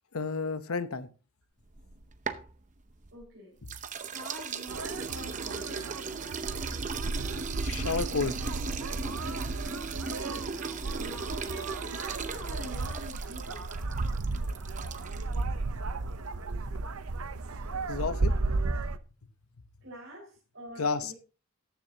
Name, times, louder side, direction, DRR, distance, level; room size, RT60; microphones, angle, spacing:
voice 1, 0.1-1.1 7.6-8.5 17.9-18.4 20.8-21.1, left 4 dB, 90° left, 12 dB, 0.9 m, -31 dB
sound 1, 1.7-3.3 3.7-15.4, right 5 dB, 35° right, 0.8 m, -38 dB
voice 2, 3.1-3.5 4.0-5.7 10.3-10.6 10.9-13.7 19.8-21.1, right 1 dB, 60° right, -5 dB, 5.1 m, -45 dB
sound 2, 4.7-19.0, right 3 dB, 85° right, 0.7 m, -34 dB
14.0 x 10.0 x 2.8 m, 0.34 s
head